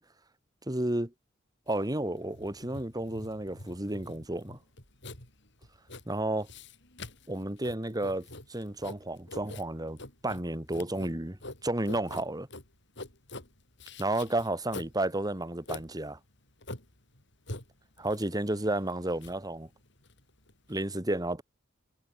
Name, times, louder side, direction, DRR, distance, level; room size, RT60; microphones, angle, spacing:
voice 1, 0.7-1.1 1.7-4.6 6.1-6.5 7.3-12.5 14.0-16.2 18.0-19.7 20.7-21.4, right 1 dB, 20° right, 2.0 m, -32 dB
Writing, 1.7-20.8, left 2 dB, 60° left, 7.8 m, -46 dB
head